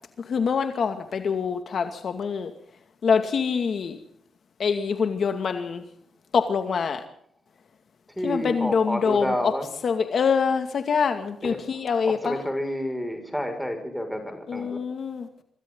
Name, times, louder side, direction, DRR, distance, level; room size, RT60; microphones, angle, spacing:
voice 1, 0.2-2.5 3.0-4.0 4.6-5.8 6.3-7.0 8.2-9.5 9.8-12.3 14.5-15.3, left 6 dB, 55° left, 7 dB, 2.4 m, -25 dB
voice 2, 8.2-9.7 11.4-11.7 12.1-14.8, equal, ahead, 5 dB, 6.1 m, -30 dB
26.0 x 25.5 x 4.0 m, 0.66 s
cardioid pair, 125°, 0 cm